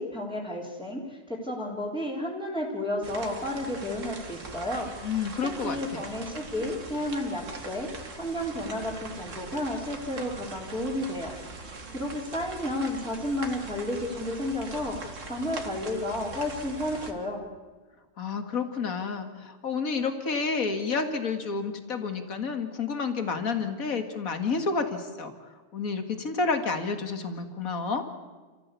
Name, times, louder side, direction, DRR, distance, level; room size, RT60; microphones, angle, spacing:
voice 1, 0.0-5.1 5.6-7.9 8.2-11.3 11.6-17.4, left 1 dB, 5° left, -6 dB, 3.6 m, -32 dB
sound 1, 3.0-17.1, right 3 dB, 60° right, 2.4 m, -41 dB
voice 2, 5.0-6.0 18.2-28.1, left 4 dB, 80° left, 7 dB, 2.4 m, -30 dB
29.5 x 15.5 x 8.4 m, 1.3 s
omnidirectional pair, 1.5 m